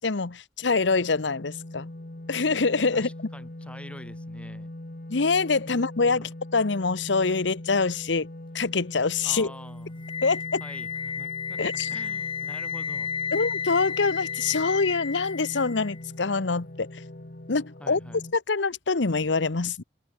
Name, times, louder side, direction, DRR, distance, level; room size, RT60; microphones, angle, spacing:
voice 1, 0.0-1.9 2.3-3.1 5.1-8.3 8.5-9.5 10.2-10.6 11.6-11.9 13.3-16.9 17.5-18.0 18.3-19.8, left 4 dB, 85° left, 1.0 m, -25 dB
sound 1, 0.6-18.3, left 1 dB, 50° left, 1.6 m, -42 dB
voice 2, 2.9-4.7 5.7-6.3 9.2-10.0 10.6-13.1 17.8-18.2, left 1 dB, 5° left, 5.6 m, -46 dB
Wind instrument woodwind instrument, 10.0-16.0, left 6 dB, 30° left, 0.6 m, -33 dB
head